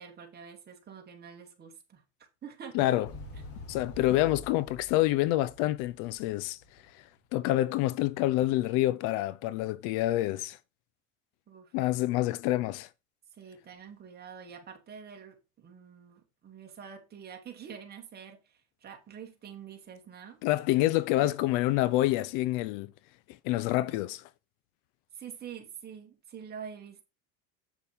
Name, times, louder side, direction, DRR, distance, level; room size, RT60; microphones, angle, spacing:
voice 1, 0.0-2.0 2.4-2.8 11.5-11.7 13.3-20.4 21.2-21.3 25.1-27.0, right 7 dB, 30° right, 2.5 m, -46 dB
voice 2, 2.7-3.1 3.7-6.6 6.9-7.0 7.3-10.6 11.7-12.9 20.4-22.9 23.4-24.3, left 16 dB, 65° left, 0.6 m, -27 dB
Motorcycle, 3.0-7.0, left 1 dB, 45° left, 2.4 m, -47 dB
8.4 x 7.1 x 3.6 m
cardioid pair, 135°, 33 cm